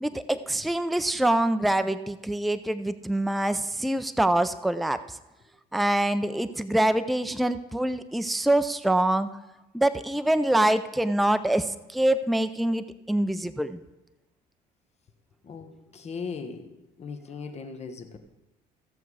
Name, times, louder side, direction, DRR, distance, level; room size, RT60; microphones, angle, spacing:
voice 1, 0.0-5.0 5.7-9.3 9.7-13.8, right 1 dB, ahead, 11 dB, 0.4 m, -25 dB
voice 2, 15.5-16.6 17.0-18.2, left 5 dB, 40° left, 7 dB, 1.2 m, -38 dB
15.5 x 6.9 x 4.8 m, 0.98 s
cardioid pair, 110°, 17 cm